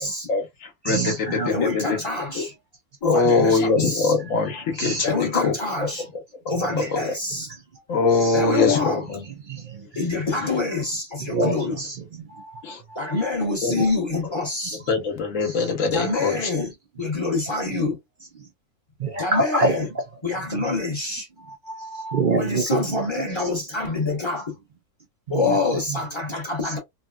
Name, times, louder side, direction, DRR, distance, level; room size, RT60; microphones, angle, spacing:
voice 1, 0.3-2.0 2.3-2.4 3.0-5.9 6.6-7.0 7.9-9.3 9.8-10.6 11.7-11.8 12.6-12.8 13.6-13.7 14.9-16.5, left 4 dB, 65° left, 1.2 m, -23 dB
voice 2, 0.8-1.7 3.8-3.9 4.8-5.1 6.7-6.8 8.2-8.4 9.5-9.9 11.3-12.0 12.3-12.5 13.7-13.9 19.0-19.8 20.6-20.7 21.7-23.3 25.4-25.6 25.9-26.0, right 3 dB, 65° right, 0.5 m, -26 dB
voice 3, 1.5-2.5 3.0-4.1 5.0-6.1 6.5-7.5 8.3-9.0 9.9-11.8 12.9-14.8 15.9-16.7 17.0-18.0 19.2-19.9 20.2-21.3 22.3-24.5 25.3-26.8, left 3 dB, 25° left, 0.8 m, -26 dB
3.2 x 2.2 x 2.2 m
omnidirectional pair, 1.6 m